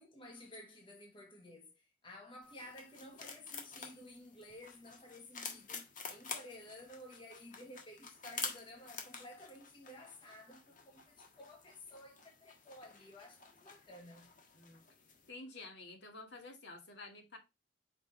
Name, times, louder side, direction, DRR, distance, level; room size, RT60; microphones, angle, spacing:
voice 1, 0.0-14.3, left 1 dB, 30° left, 1.3 m, -54 dB
sound 1, 2.4-15.3, left 5 dB, 45° left, 1.5 m, -49 dB
voice 2, 14.5-14.8 15.3-17.4, left 2 dB, 65° left, 2.0 m, -50 dB
5.2 x 5.1 x 4.3 m
head